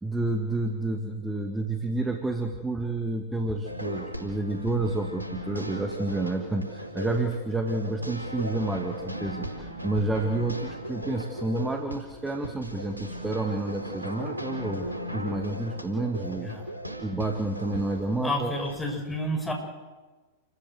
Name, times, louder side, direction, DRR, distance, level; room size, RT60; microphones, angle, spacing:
voice 1, 0.0-16.5 17.0-18.5, right 2 dB, 10° right, 4 dB, 1.9 m, -30 dB
sound 1, 3.6-18.8, equal, 85° right, 4.6 m, -37 dB
voice 2, 16.4-16.7 18.2-19.5, left 1 dB, 10° left, 1 dB, 6.5 m, -30 dB
29.0 x 14.5 x 7.7 m, 1.3 s
figure-of-eight pair, 100°, 0 cm